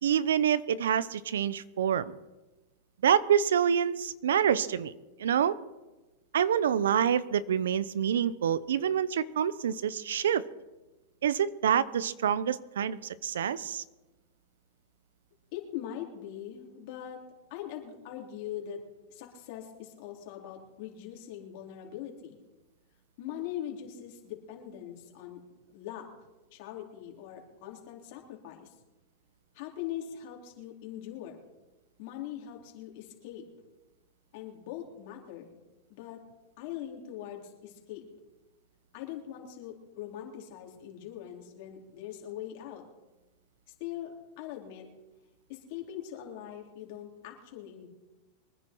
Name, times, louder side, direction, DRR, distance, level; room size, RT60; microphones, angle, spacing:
voice 1, 0.0-2.1 3.0-4.9 5.2-5.6 6.3-10.4 11.2-13.8, right 8 dB, 85° right, 18 dB, 0.7 m, -27 dB
voice 2, 15.5-17.2 17.5-18.8 19.1-22.4 23.2-25.4 25.7-26.1 26.5-28.7 29.5-31.4 32.0-33.4 34.3-35.5 35.9-36.2 36.6-38.0 38.9-42.8 43.8-44.9 45.5-47.9, left 11 dB, 60° left, 1 dB, 3.9 m, -41 dB
24.0 x 10.0 x 4.6 m, 1.1 s
hypercardioid pair, 115°, 0 cm